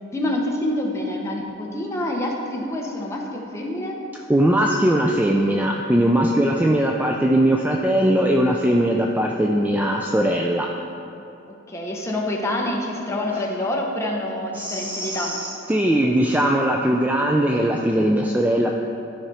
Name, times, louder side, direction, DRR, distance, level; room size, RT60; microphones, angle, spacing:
voice 1, 0.1-4.0 11.7-15.3, left 1 dB, 15° left, -1 dB, 0.9 m, -27 dB
voice 2, 4.3-10.7 14.5-18.7, right 1 dB, 10° right, 0 dB, 0.3 m, -20 dB
12.5 x 5.0 x 4.2 m, 2.9 s
head